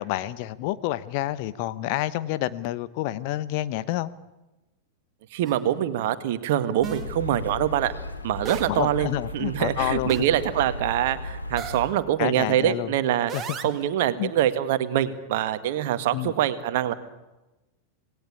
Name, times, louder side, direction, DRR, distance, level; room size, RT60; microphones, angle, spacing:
voice 1, 0.0-4.1 8.7-10.3 12.2-12.9 13.3-13.4 14.2-14.3 16.1-16.3, left 15 dB, 45° left, 15 dB, 1.0 m, -28 dB
voice 2, 5.3-7.9 8.2-9.1 9.3-13.3 13.6-16.9, right 11 dB, 50° right, 11 dB, 1.8 m, -24 dB
sound 1, 5.4-5.5 6.8-7.1 8.4-8.8 10.1-10.4 11.6-11.9 13.3-13.9, right 8 dB, 25° right, 2.3 m, -35 dB
sound 2, 6.8-11.9, left 2 dB, 80° left, 2.6 m, -35 dB
27.0 x 19.0 x 8.5 m, 1.0 s
figure-of-eight pair, 90°, 0 cm